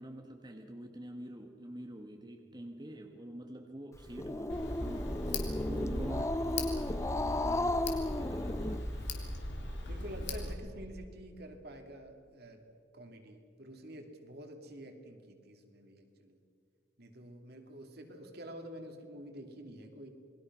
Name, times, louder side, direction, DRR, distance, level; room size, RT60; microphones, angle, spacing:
voice 1, 0.0-8.9, right 1 dB, 25° right, 3 dB, 1.4 m, -46 dB
Growling, 3.9-9.3, left 1 dB, 15° left, 0.7 m, -35 dB
Tick, 4.5-10.5, left 1 dB, 70° left, 3.3 m, -38 dB
voice 2, 9.9-12.6 12.9-16.4 17.0-20.1, right 1 dB, 60° right, 4 dB, 2.9 m, -48 dB
28.5 x 21.0 x 6.3 m, 2.2 s
head